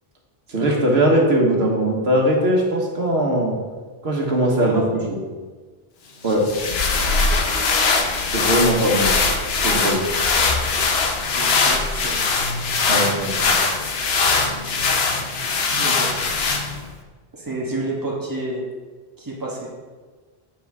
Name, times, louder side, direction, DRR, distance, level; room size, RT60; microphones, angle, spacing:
voice 1, 0.5-3.6 4.0-5.2 6.2-6.5 8.3-9.2 9.6-10.0 12.9-13.6, right 1 dB, 90° right, -1 dB, 1.6 m, -20 dB
voice 2, 4.4-5.0 5.3-5.4 11.3-12.2 15.8-16.1 17.3-18.6 19.2-19.7, right 1 dB, 20° right, -3 dB, 1.3 m, -29 dB
sound 1, 6.3-16.9, left 4 dB, 80° left, 1.1 m, -21 dB
7.2 x 7.2 x 3.5 m, 1.4 s
omnidirectional pair, 1.0 m